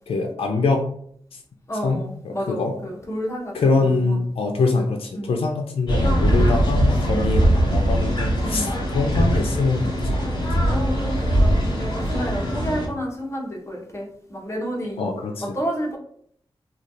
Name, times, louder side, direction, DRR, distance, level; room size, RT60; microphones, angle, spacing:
voice 1, 0.1-0.8 1.8-2.7 3.5-10.7 15.0-15.6, left 3 dB, 90° left, 3 dB, 0.4 m, -24 dB
voice 2, 1.7-4.2 5.1-5.3 7.1-7.3 8.4-8.9 10.5-15.0 15.4-16.0, equal, 30° left, -1 dB, 1.0 m, -30 dB
sound 1, 5.9-12.9, equal, 50° left, 1.4 m, -21 dB
3.2 x 2.3 x 3.9 m, 0.64 s
wide cardioid pair, 90°, 10 cm